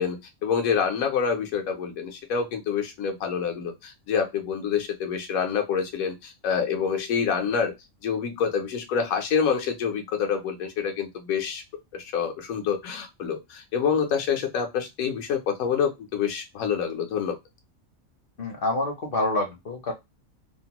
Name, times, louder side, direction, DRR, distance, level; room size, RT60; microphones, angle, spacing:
voice 1, 0.0-7.7 8.0-11.6 11.9-17.4, left 6 dB, 85° left, 4 dB, 1.1 m, -27 dB
voice 2, 18.4-19.9, left 2 dB, 55° left, 2 dB, 0.7 m, -27 dB
2.9 x 2.0 x 2.8 m, 0.20 s
omnidirectional pair, 1.4 m